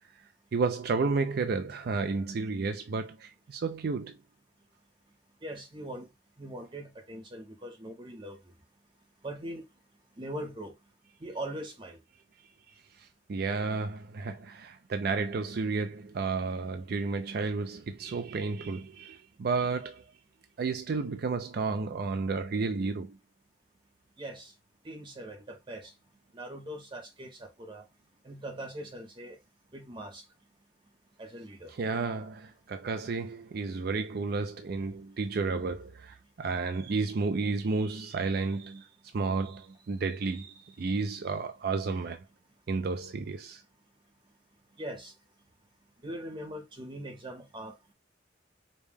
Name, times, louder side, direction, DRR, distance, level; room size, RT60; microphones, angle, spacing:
voice 1, 0.5-4.2 13.0-20.0 20.6-23.2 31.7-42.2 42.7-43.6, right 4 dB, 55° right, 0.4 m, -32 dB
voice 2, 5.4-6.1 6.4-8.4 9.2-9.7 10.2-10.7 11.2-12.0 24.2-24.5 24.8-25.9 26.3-27.8 28.2-29.4 29.7-30.2 31.2-31.7 44.8-45.1 46.0-47.9, right 1 dB, 25° right, 0.7 m, -41 dB
5.1 x 2.1 x 3.3 m
head